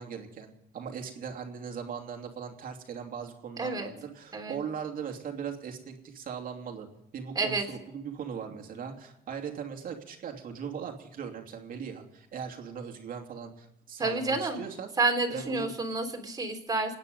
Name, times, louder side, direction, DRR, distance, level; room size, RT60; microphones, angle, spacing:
voice 1, 0.0-6.9 7.1-14.9 15.3-15.7, right 7 dB, 55° right, 3 dB, 2.9 m, -39 dB
voice 2, 3.6-3.9 4.3-4.6 7.4-7.6 14.0-14.6 15.0-17.0, right 3 dB, 20° right, 3 dB, 3.7 m, -29 dB
27.0 x 9.8 x 5.4 m, 0.84 s
cardioid pair, 110°, 17 cm